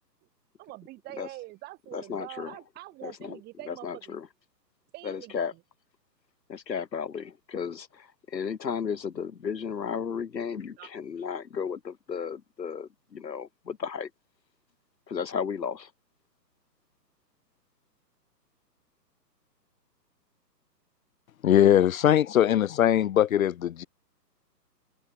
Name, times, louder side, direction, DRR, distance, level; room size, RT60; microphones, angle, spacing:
voice 1, 0.6-4.1 4.9-5.6 10.8-10.9, right 19 dB, 20° right, 3.4 m, -44 dB
voice 2, 1.9-2.6 3.0-3.4 3.7-4.3 5.0-5.5 6.5-14.1 15.1-15.9, left 6 dB, 80° left, 2.3 m, -34 dB
voice 3, 21.4-23.9, left 11 dB, 55° left, 0.7 m, -21 dB
hypercardioid pair, 145°, 50 cm